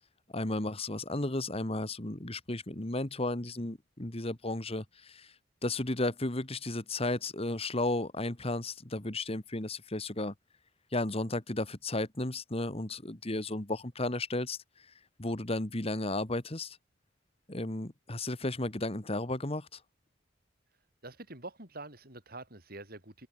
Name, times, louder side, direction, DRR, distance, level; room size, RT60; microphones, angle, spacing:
voice 1, 0.3-5.3 5.6-10.3 10.9-14.9 15.2-16.8 17.5-19.8, left 2 dB, 30° left, 2.0 m, -34 dB
voice 2, 21.0-23.3, right 2 dB, 50° right, 7.6 m, -46 dB
open air
head